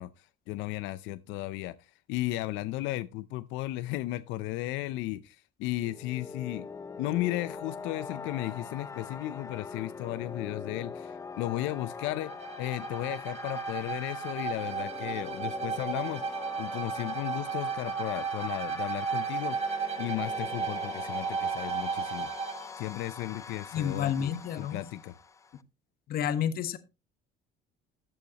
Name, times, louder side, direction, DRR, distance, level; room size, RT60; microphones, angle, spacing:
voice 1, 0.0-6.7 7.0-12.3 12.6-19.6 20.0-22.3 22.8-25.1, left 16 dB, 85° left, 0.5 m, -35 dB
sound 1, 5.7-25.6, left 5 dB, 15° left, 0.4 m, -43 dB
Bowed string instrument, 12.2-22.7, right 6 dB, 35° right, 1.6 m, -34 dB
voice 2, 23.7-24.8 26.1-26.8, left 9 dB, 55° left, 1.2 m, -30 dB
13.5 x 8.4 x 2.9 m
cardioid pair, 145°, 19 cm